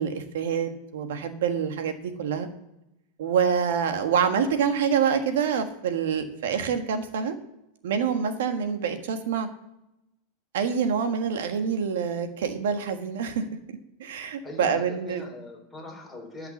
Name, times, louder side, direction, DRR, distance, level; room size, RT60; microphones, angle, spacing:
voice 1, 0.0-2.5 3.2-7.3 7.8-9.5 10.5-13.5 14.0-15.2, right 7 dB, 85° right, 7 dB, 1.5 m, -26 dB
voice 2, 14.4-16.5, left 2 dB, 5° left, -2 dB, 3.8 m, -42 dB
12.0 x 5.8 x 7.2 m, 0.88 s
supercardioid pair, 150°, 0 cm